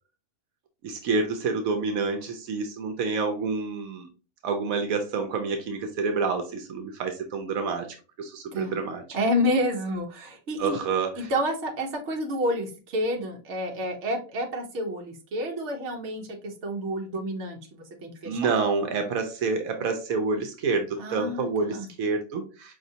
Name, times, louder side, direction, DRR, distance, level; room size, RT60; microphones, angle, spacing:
voice 1, 0.8-4.1 4.4-7.9 8.2-9.0 10.6-11.3 18.2-22.7, right 4 dB, 80° right, 5 dB, 1.1 m, -28 dB
voice 2, 9.1-10.7 11.2-16.3 16.6-18.5 21.0-21.9, equal, 60° right, 2 dB, 1.1 m, -29 dB
5.0 x 2.8 x 2.7 m, 0.34 s
omnidirectional pair, 1.4 m